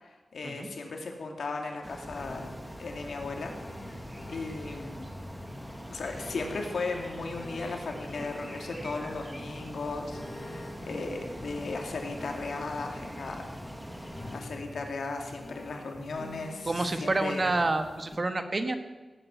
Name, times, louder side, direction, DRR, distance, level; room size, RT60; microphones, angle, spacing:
voice 1, 0.0-3.5 3.9-5.1 5.9-13.6 13.9-17.4, left 3 dB, 90° left, 3 dB, 2.5 m, -37 dB
sound 1, 1.8-14.4, equal, 5° right, 1.2 m, -43 dB
sound 2, 2.2-18.2, left 2 dB, 30° left, 2.4 m, -47 dB
voice 2, 16.6-18.8, right 2 dB, 35° right, 8 dB, 1.4 m, -28 dB
18.0 x 8.7 x 8.1 m, 1.2 s
wide cardioid pair, 115°, 0 cm